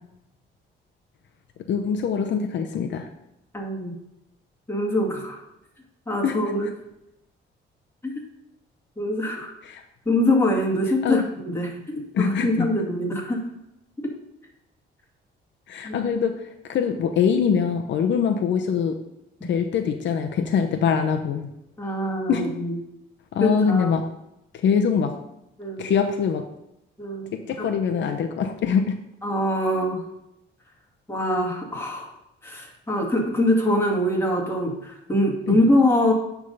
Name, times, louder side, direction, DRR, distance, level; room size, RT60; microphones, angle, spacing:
voice 1, 1.7-3.1 6.2-6.4 9.6-9.8 11.0-11.2 12.1-12.7 15.7-16.4 16.7-19.0 19.4-21.5 22.3-22.4 23.3-24.1 24.6-25.1 25.8-26.4 27.3-28.9 35.5-35.6, left 7 dB, 65° left, 5 dB, 0.8 m, -23 dB
voice 2, 3.5-4.0 4.7-5.4 6.1-6.7 9.0-9.5 10.1-13.4 14.0-14.1 15.8-16.1 19.4-19.5 21.8-22.8 23.4-24.0 25.6-25.9 27.0-27.7 29.2-30.0 31.1-32.1 32.4-36.1, left 1 dB, 10° left, -1 dB, 2.2 m, -24 dB
9.7 x 3.7 x 5.4 m, 0.85 s
cardioid pair, 90°, 20 cm